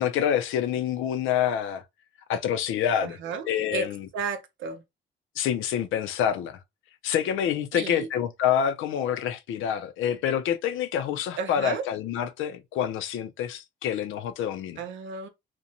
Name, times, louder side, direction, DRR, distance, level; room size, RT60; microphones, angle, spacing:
voice 1, 0.0-1.8 2.3-3.2 3.5-4.1 5.4-6.6 7.0-14.8, left 9 dB, 85° left, 0.5 m, -27 dB
voice 2, 3.0-3.9 4.1-4.8 7.7-8.1 11.4-11.8 14.8-15.3, right 5 dB, 75° right, 0.6 m, -33 dB
2.6 x 2.1 x 2.8 m
cardioid pair, 90°, 20 cm